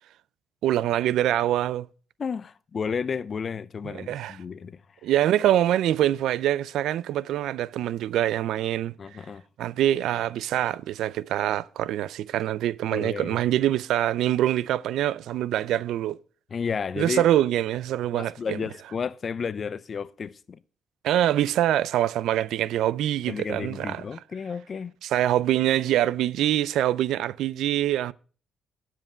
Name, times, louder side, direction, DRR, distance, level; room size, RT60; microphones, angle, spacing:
voice 1, 0.6-1.9 3.8-4.4 5.0-9.0 9.6-16.2 17.0-18.6 21.0-24.0 25.0-28.1, right 12 dB, 80° right, 0.4 m, -24 dB
voice 2, 2.2-4.8 9.0-9.4 12.9-13.4 16.5-17.3 18.1-20.6 23.3-24.9, left 6 dB, 45° left, 0.6 m, -32 dB
9.9 x 7.4 x 5.0 m
cardioid pair, 90°, 0 cm